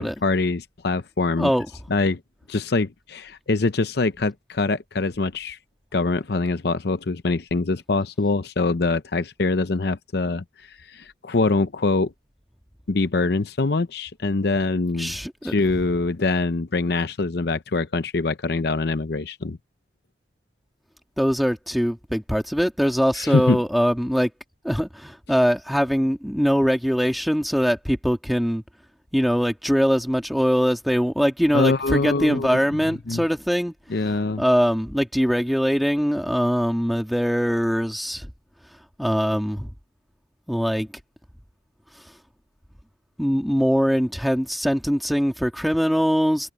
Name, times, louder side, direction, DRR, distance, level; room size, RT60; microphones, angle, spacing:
voice 1, 0.0-1.5 1.9-2.2 2.5-5.6 5.9-10.4 10.9-12.1 12.9-15.1 15.4-19.6 23.1-23.6 31.5-32.6 33.1-33.2 33.9-34.4, left 3 dB, 60° left, 0.7 m, -24 dB
voice 2, 15.0-15.5 21.2-24.3 24.6-28.6 29.1-33.7 34.4-38.3 39.0-39.7 40.5-40.9 43.2-46.5, equal, ahead, 2.4 m, -22 dB
head